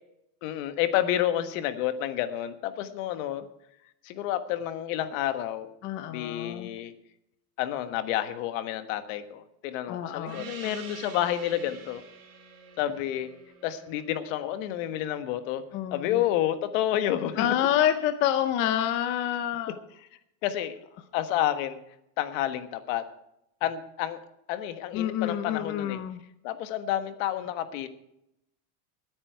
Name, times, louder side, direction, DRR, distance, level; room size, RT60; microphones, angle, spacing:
voice 1, 0.4-3.5 4.0-5.7 6.1-6.9 7.6-12.0 12.8-13.3 13.6-15.6 15.9-17.5 19.7-19.8 20.4-20.8 21.1-21.8 22.2-23.1 23.6-24.2 24.5-26.0 26.4-27.9, left 12 dB, 60° left, 10 dB, 1.4 m, -29 dB
voice 2, 5.8-6.7 9.9-10.4 15.7-16.2 17.4-19.7 24.9-26.2, left 11 dB, 30° left, 9 dB, 0.5 m, -27 dB
Gong, 10.3-15.3, right 5 dB, 45° right, 3.4 m, -47 dB
18.5 x 9.7 x 4.7 m, 0.80 s
cardioid pair, 180°, 44 cm